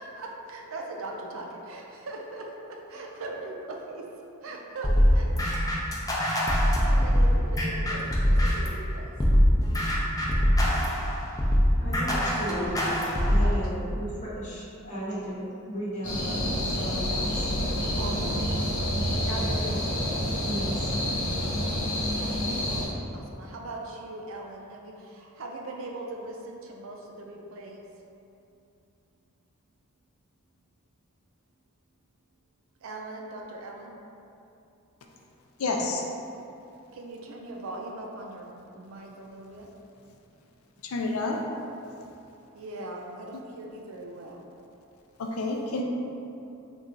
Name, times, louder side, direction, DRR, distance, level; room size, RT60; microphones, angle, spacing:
voice 1, 0.0-4.0 4.4-5.3 6.8-9.1 13.4-13.8 18.0-18.9 19.1-20.3 22.2-22.8 23.1-27.8 32.8-34.0 36.9-38.5 38.7-39.7 42.5-44.5, right 2 dB, 70° right, 0 dB, 0.4 m, -40 dB
sound 1, 4.8-8.8 9.2-13.6, equal, 15° left, 0.5 m, -23 dB
voice 2, 11.8-12.7 13.3-17.5 20.4-20.9, equal, 35° left, -8 dB, 0.9 m, -35 dB
sound 2, 16.0-22.8, equal, 60° left, 1.3 m, -28 dB
voice 3, 35.6-36.0 40.8-41.4 45.2-45.8, left 3 dB, 90° left, 1 dB, 0.5 m, -29 dB
4.1 x 2.3 x 3.8 m, 2.8 s
head